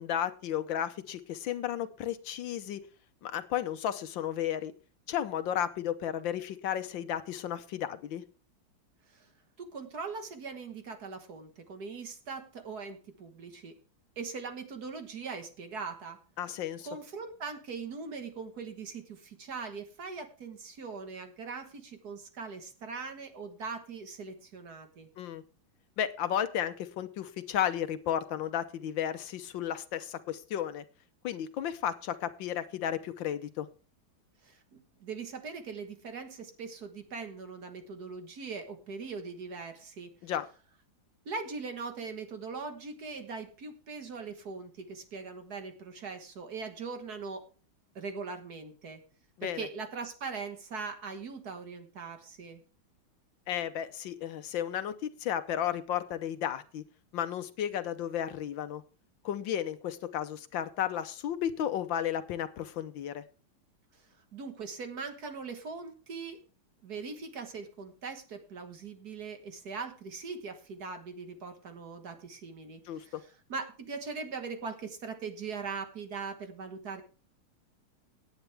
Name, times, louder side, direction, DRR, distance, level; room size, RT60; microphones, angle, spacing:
voice 1, 0.0-2.8 3.2-4.7 5.1-8.2 16.4-16.9 25.2-25.4 26.0-30.8 31.2-33.7 40.2-40.4 49.4-49.6 53.5-56.8 57.1-58.8 59.2-63.2 72.9-73.2, left 10 dB, 70° left, 11 dB, 1.4 m, -33 dB
voice 2, 9.6-13.7 14.2-16.2 16.9-25.1 34.4-40.1 41.3-47.5 48.0-49.0 49.4-52.6 63.9-66.4 66.8-77.0, right 4 dB, 50° right, 7 dB, 1.8 m, -41 dB
17.5 x 9.0 x 3.4 m, 0.37 s
omnidirectional pair, 2.3 m